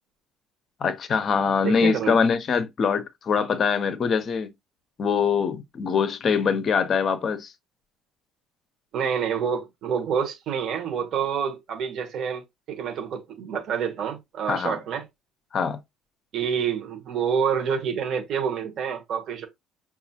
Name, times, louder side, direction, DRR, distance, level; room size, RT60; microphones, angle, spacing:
voice 1, 0.8-4.5 5.0-7.5 14.5-14.8 15.5-15.8, left 6 dB, 30° left, 0.6 m, -23 dB
voice 2, 1.6-2.2 8.9-12.4 12.7-15.0 16.3-19.5, right 7 dB, 45° right, 1.0 m, -27 dB
5.9 x 2.4 x 2.8 m
cardioid pair, 170°, 0 cm